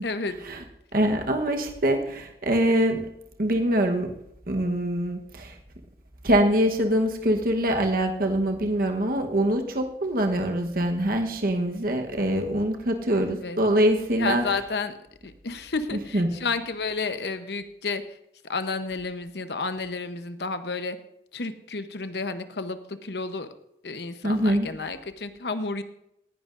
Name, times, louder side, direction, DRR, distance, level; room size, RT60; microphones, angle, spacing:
voice 1, 0.0-0.4 13.1-13.6 14.2-14.9 15.2-18.0 18.4-21.0 21.3-23.5 23.8-25.8, left 4 dB, 70° left, 10 dB, 0.9 m, -31 dB
voice 2, 0.9-3.1 3.4-4.1 4.5-5.5 6.2-14.4 15.9-16.4 24.2-24.7, right 1 dB, 55° right, 4 dB, 1.1 m, -24 dB
18.0 x 11.0 x 2.6 m, 0.78 s
head